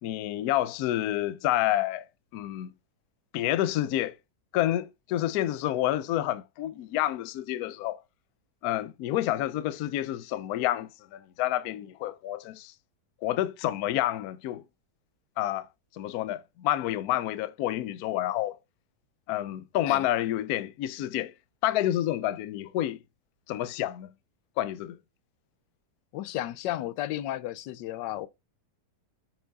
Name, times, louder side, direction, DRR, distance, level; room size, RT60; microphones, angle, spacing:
voice 1, 0.0-2.1 2.3-2.7 3.3-4.1 4.5-8.0 8.6-12.7 13.2-14.6 15.4-15.7 16.0-18.6 19.3-21.3 21.6-23.0 23.5-24.1 24.6-25.0, left 13 dB, 70° left, 1.0 m, -29 dB
voice 2, 26.1-28.3, left 14 dB, 90° left, 1.2 m, -33 dB
7.4 x 4.8 x 4.0 m
omnidirectional pair, 1.8 m